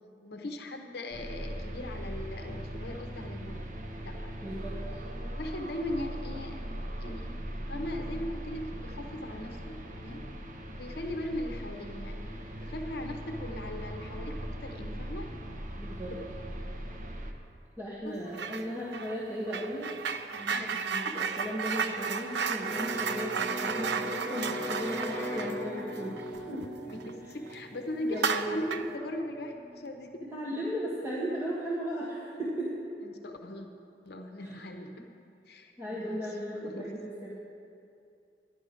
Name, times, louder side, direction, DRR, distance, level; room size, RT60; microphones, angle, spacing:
voice 1, 0.2-3.7 4.0-4.4 4.9-7.4 7.7-10.3 10.7-15.3 16.1-16.3 18.0-18.2 20.5-21.2 26.9-30.2 33.0-33.7 34.0-35.1 35.5-37.0, left 1 dB, 65° left, 4 dB, 0.9 m, -39 dB
sound 1, 1.1-17.3, equal, 45° right, 1.0 m, -39 dB
voice 2, 4.4-5.0 15.8-16.1 17.8-19.9 20.3-26.7 28.0-28.7 30.3-32.8 34.4-34.5 35.8-37.3, equal, 15° right, -8 dB, 1.7 m, -36 dB
sound 2, 18.3-18.7 18.9-27.1 27.5-27.6 28.1-29.0, right 6 dB, 70° right, 0.5 m, -33 dB
Electric guitar, 22.7-30.4, equal, 15° left, 2.7 m, -40 dB
11.5 x 11.0 x 5.1 m, 2.5 s
head